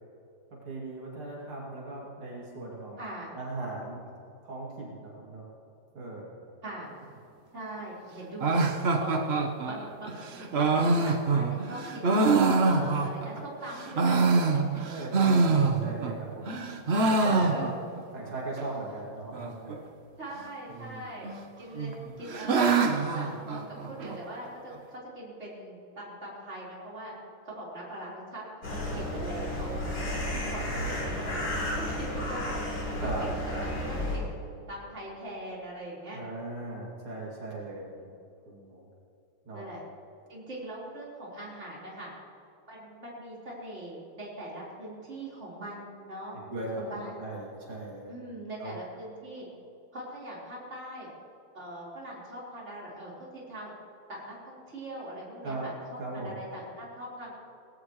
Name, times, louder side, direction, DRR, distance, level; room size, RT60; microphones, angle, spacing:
voice 1, 0.5-3.0 3.3-4.0 4.4-5.5 5.9-6.4 14.9-16.6 16.9-17.7 18.1-19.9 30.3-30.5 33.0-33.7 36.1-37.9 38.5-38.9 39.5-39.7 46.3-48.2 48.6-48.8 55.4-55.7 56.0-56.4, right 2 dB, 75° right, -4 dB, 3.6 m, -38 dB
voice 2, 3.0-3.3 6.6-6.9 7.5-8.6 9.0-9.3 9.6-12.3 12.6-14.2 14.5-14.8 17.2-17.7 20.2-21.3 21.6-21.9 22.2-27.1 27.4-29.8 30.5-33.3 33.6-33.7 34.1-34.4 34.7-36.2 38.0-38.1 39.5-39.8 40.3-42.1 42.7-46.4 46.8-47.2 48.1-49.4 49.9-51.1 51.5-53.7 54.1-57.3, right 1 dB, 30° right, -6 dB, 4.5 m, -41 dB
sound 1, 8.4-13.4 13.8-16.2 16.5-18.0 18.3-18.4 18.6-18.7 19.3-19.8 20.8-21.4 21.8-24.2, right 3 dB, 50° right, 0.7 m, -25 dB
sound 2, 28.6-34.2, left 1 dB, 60° left, 4.1 m, -32 dB
19.0 x 17.0 x 3.2 m, 2.6 s
omnidirectional pair, 2.4 m